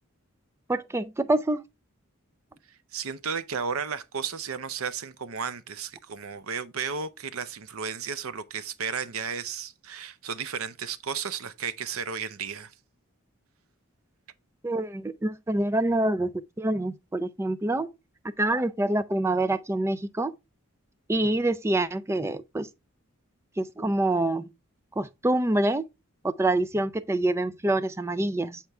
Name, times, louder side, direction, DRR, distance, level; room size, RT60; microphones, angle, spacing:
voice 1, 0.7-1.6 14.6-16.3 16.6-17.9 18.4-20.3 21.1-22.7 23.6-24.5 25.0-25.9 26.2-28.6, right 1 dB, 10° right, 0.3 m, -26 dB
voice 2, 2.9-12.7, right 6 dB, 80° right, 0.6 m, -33 dB
8.1 x 4.4 x 3.4 m
head